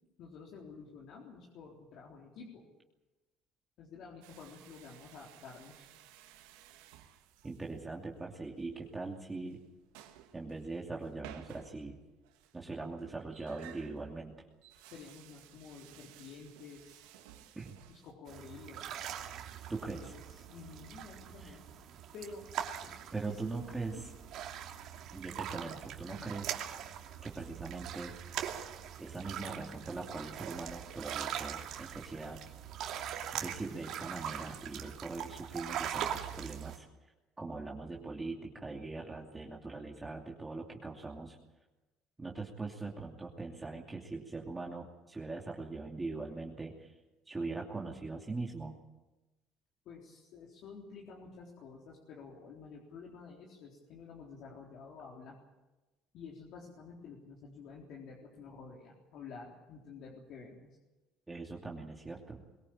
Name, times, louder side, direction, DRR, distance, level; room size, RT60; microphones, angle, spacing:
voice 1, 0.2-2.7 3.8-5.9 14.9-17.4 17.9-19.0 19.8-21.6 22.1-22.5 22.8-23.0 23.3-24.0 26.1-26.3 49.9-55.4 56.1-60.8, left 5 dB, 65° left, -2 dB, 3.8 m, -50 dB
sound 1, 4.2-18.1, right 11 dB, 90° right, 2.2 m, -57 dB
voice 2, 7.4-9.6 10.3-12.0 12.5-14.4 17.5-17.8 19.7-20.1 21.4-21.6 23.1-24.0 25.1-26.6 27.2-28.1 29.0-32.4 33.3-36.9 37.4-41.4 42.2-46.9 47.3-48.8 61.3-62.4, right 3 dB, 15° right, -1 dB, 2.8 m, -41 dB
sound 2, 18.3-36.8, right 9 dB, 65° right, 2.7 m, -42 dB
22.5 x 18.0 x 8.8 m, 1.1 s
supercardioid pair, 90°, 0 cm